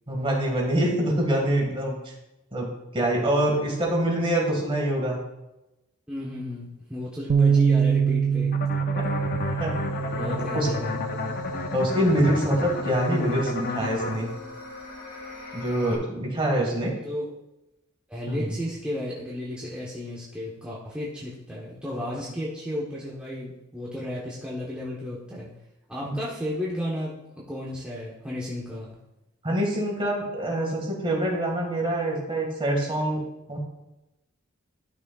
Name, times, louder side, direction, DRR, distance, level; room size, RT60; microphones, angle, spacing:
voice 1, 0.1-1.9 2.5-5.2 8.9-9.0 9.6-9.7 10.2-10.7 11.7-14.3 15.5-16.9 18.3-18.6 22.1-22.2 26.0-26.1 29.4-33.2 33.5-33.6, right 1 dB, 25° right, -1 dB, 1.8 m, -25 dB
voice 2, 6.1-8.6 10.2-11.0 16.9-17.2 18.1-25.5 25.9-29.0, left 1 dB, 5° right, -7 dB, 1.0 m, -33 dB
Bass guitar, 7.3-13.5, right 6 dB, 40° right, 0.3 m, -26 dB
sound 1, 8.5-14.2, left 3 dB, 45° left, 0.6 m, -32 dB
sound 2, 8.9-15.9, left 4 dB, 75° left, 2.1 m, -39 dB
11.5 x 6.1 x 2.3 m, 0.97 s
head